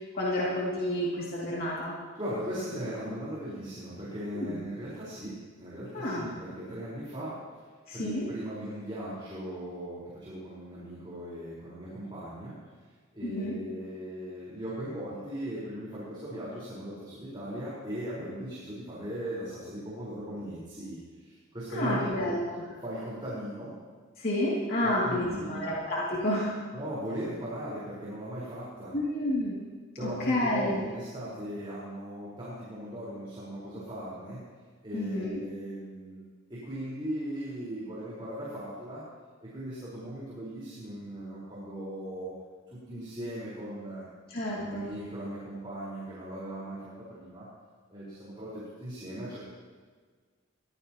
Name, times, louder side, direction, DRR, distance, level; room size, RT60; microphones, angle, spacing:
voice 1, 0.0-1.9 4.3-4.6 5.9-6.3 7.9-8.3 13.2-13.6 21.7-22.6 24.2-26.5 28.9-29.5 30.3-30.8 34.9-35.3 44.3-44.9, left 1 dB, 45° left, -6 dB, 2.8 m, -30 dB
voice 2, 2.1-7.4 7.9-12.5 13.1-22.4 22.8-23.7 24.8-25.7 26.7-28.9 30.0-34.4 34.8-36.2 36.5-39.0 39.4-42.3 42.7-44.0 44.4-47.5 47.9-49.4, right 1 dB, 25° right, -9 dB, 4.6 m, -38 dB
22.0 x 16.0 x 3.0 m, 1.5 s
head